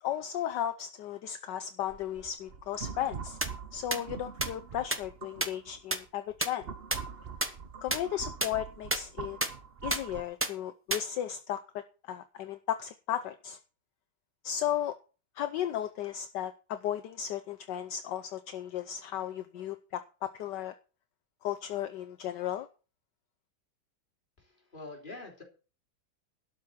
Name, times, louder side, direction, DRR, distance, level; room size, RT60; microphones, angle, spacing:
voice 1, 0.0-3.4 3.7-6.6 7.8-9.4 9.8-13.6 14.4-14.9 15.4-20.7 21.4-22.7, left 11 dB, 70° left, 10 dB, 1.3 m, -35 dB
sound 1, 1.9-5.8 6.3-10.2, right 6 dB, 40° right, 0.9 m, -43 dB
sound 2, 3.4-3.5 3.9-4.0 4.4-4.5 4.9-5.0 5.4-5.5 5.9-6.0 6.4-6.5 6.9-7.0 7.4-7.5 7.9-8.0 8.4-8.5 8.9-9.0 9.4-9.5 9.9-10.0 10.4-10.5 10.9-11.0, right 1 dB, 10° right, 0.5 m, -28 dB
voice 2, 24.4-25.4, left 2 dB, 25° left, 1 dB, 3.3 m, -45 dB
12.0 x 6.2 x 7.2 m, 0.35 s
omnidirectional pair, 2.1 m